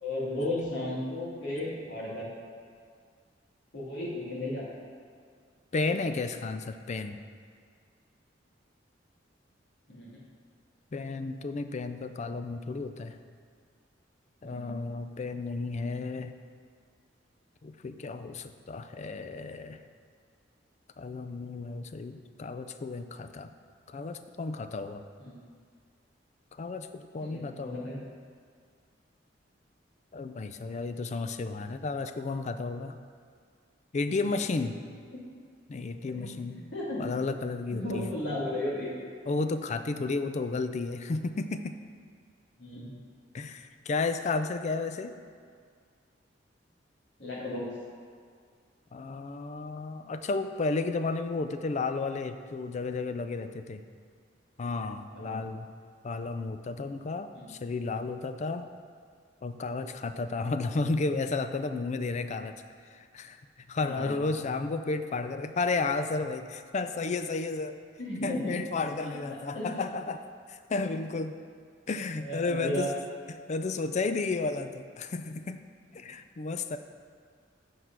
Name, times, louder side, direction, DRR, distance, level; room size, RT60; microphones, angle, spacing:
voice 1, 0.0-2.3 3.7-4.6 9.9-10.2 14.4-14.8 25.2-25.4 27.2-28.0 34.1-34.2 35.1-35.2 36.0-37.1 37.7-38.9 42.6-42.9 47.2-47.7 55.1-55.4 57.3-57.5 63.8-64.2 68.0-68.5 69.0-69.2 69.5-69.8 70.7-70.9 72.2-72.9, left 1 dB, 70° left, -6 dB, 2.3 m, -35 dB
voice 2, 5.7-7.2 10.9-13.2 14.4-16.3 17.6-19.8 21.0-23.5 23.9-25.0 26.6-27.8 30.1-33.0 33.9-34.8 35.7-36.6 37.0-38.1 39.3-41.7 43.3-45.1 48.9-53.8 54.6-55.7 56.0-58.7 59.4-62.5 62.9-63.4 63.7-67.8 68.2-71.4 71.9-72.9 73.3-75.6 75.9-76.8, left 3 dB, 40° left, 9 dB, 0.4 m, -32 dB
7.9 x 4.8 x 6.0 m, 2.1 s
head